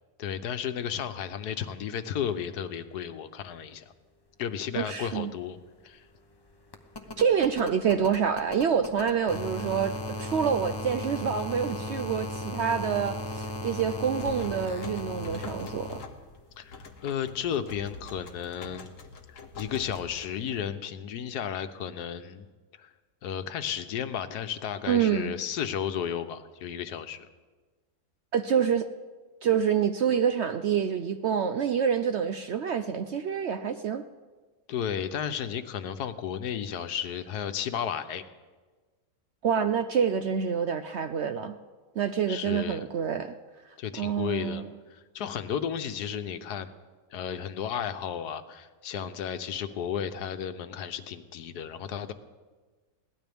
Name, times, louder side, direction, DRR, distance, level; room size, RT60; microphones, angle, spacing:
voice 1, 0.2-3.9 4.4-5.6 5.8-6.0 16.6-18.9 19.3-22.5 22.8-22.9 23.2-27.3 34.7-38.2 42.3-42.9 43.8-46.7 47.1-52.1, left 8 dB, 90° left, 10 dB, 1.4 m, -33 dB
voice 2, 4.7-5.3 7.2-16.0 24.9-25.3 28.3-28.9 29.4-34.0 39.4-41.5 42.0-43.3 44.0-44.7, right 7 dB, 65° right, 8 dB, 0.7 m, -27 dB
sound 1, 4.8-4.9 5.1-16.0 17.5-17.6, left 1 dB, 20° left, 0.7 m, -37 dB
sound 2, 13.9-20.7, left 3 dB, 60° left, 1.5 m, -45 dB
21.5 x 17.0 x 3.5 m, 1.4 s
omnidirectional pair, 1.7 m